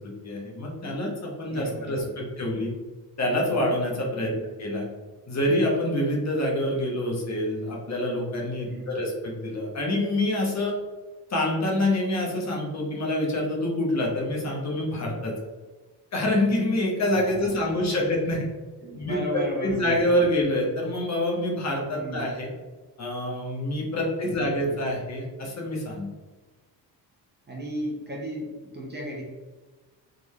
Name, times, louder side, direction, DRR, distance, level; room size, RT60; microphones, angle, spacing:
voice 1, 0.0-2.7 3.2-4.9 5.3-10.7 11.3-15.3 16.1-18.5 18.9-22.5 23.0-26.1, left 1 dB, 40° left, -1 dB, 1.0 m, -26 dB
voice 2, 1.4-2.3 4.2-4.5 8.7-9.0 17.1-17.5 18.8-20.1 21.9-22.3 24.0-24.8 27.5-29.2, equal, 25° right, -2 dB, 0.8 m, -35 dB
3.8 x 3.4 x 3.1 m, 1.3 s
wide cardioid pair, 170°, 43 cm